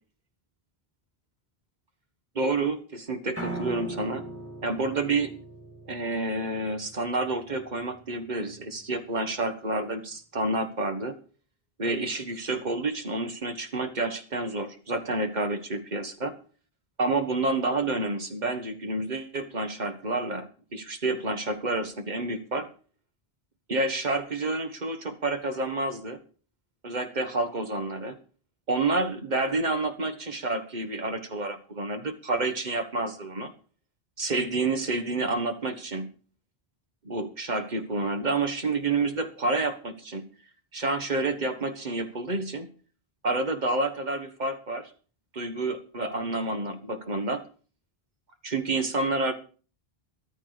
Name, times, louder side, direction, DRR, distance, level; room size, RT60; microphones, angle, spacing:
voice 1, 2.3-4.2 4.6-5.3 5.9-11.1 11.8-16.3 17.0-22.7 23.7-26.2 26.8-28.2 28.7-33.5 34.2-36.1 37.0-40.2 40.7-42.7 43.2-44.9 45.3-47.4 48.4-49.3, right 2 dB, 45° right, 9 dB, 1.5 m, -29 dB
Piano, 3.4-9.5, right 1 dB, 15° right, 2.9 m, -41 dB
13.5 x 12.5 x 5.0 m, 0.40 s
omnidirectional pair, 1.0 m